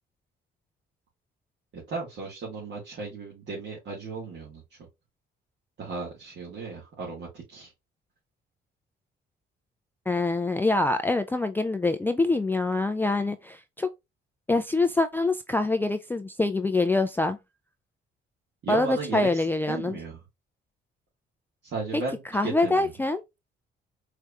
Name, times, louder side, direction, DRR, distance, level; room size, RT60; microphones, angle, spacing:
voice 1, 1.7-4.6 5.8-7.7 18.6-20.1 21.6-22.9, right 3 dB, 65° right, 2.2 m, -35 dB
voice 2, 10.1-13.9 14.5-17.4 18.7-20.0 21.9-22.0 22.3-23.2, left 2 dB, 10° left, 0.4 m, -25 dB
4.7 x 3.3 x 2.5 m
cardioid pair, 90°, 20 cm